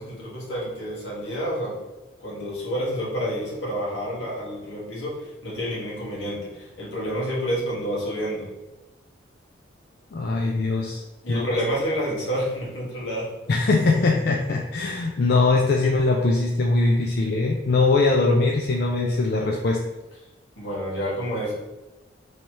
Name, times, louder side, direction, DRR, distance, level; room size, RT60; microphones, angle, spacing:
voice 1, 0.0-1.8 2.2-8.5 11.2-13.3 20.6-21.5, equal, 75° left, -5 dB, 1.5 m, -29 dB
voice 2, 10.1-11.0 11.3-11.4 13.5-19.8, left 3 dB, 55° left, 0 dB, 0.4 m, -21 dB
3.2 x 2.8 x 4.6 m, 1.1 s
head